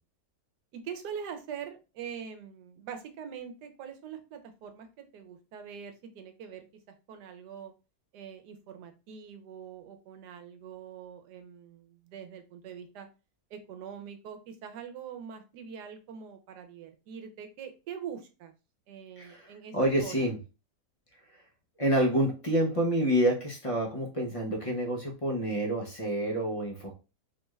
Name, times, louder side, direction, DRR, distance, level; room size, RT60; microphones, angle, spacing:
voice 1, 0.7-7.7 8.1-13.1 13.5-18.5 18.9-19.8 20.0-20.3 26.2-26.5, right 7 dB, 85° right, 7 dB, 1.3 m, -43 dB
voice 2, 19.2-20.4 21.8-26.9, right 1 dB, 50° left, 0 dB, 0.4 m, -28 dB
4.2 x 2.3 x 3.1 m, 0.31 s
omnidirectional pair, 1.7 m